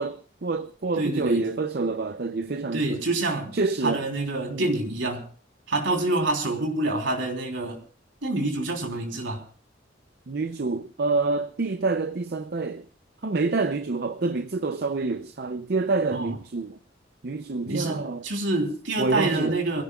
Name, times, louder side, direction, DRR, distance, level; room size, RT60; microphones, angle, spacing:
voice 1, 0.0-3.0 3.5-4.0 4.5-4.7 10.3-12.9 13.2-16.8 17.2-18.2 19.0-19.6, right 3 dB, 55° right, 0.6 m, -27 dB
voice 2, 1.0-1.5 2.7-3.5 3.8-5.3 5.7-7.8 8.2-9.4 16.1-16.3 17.6-19.8, right 2 dB, 85° right, 3.5 m, -27 dB
24.5 x 16.0 x 2.4 m
head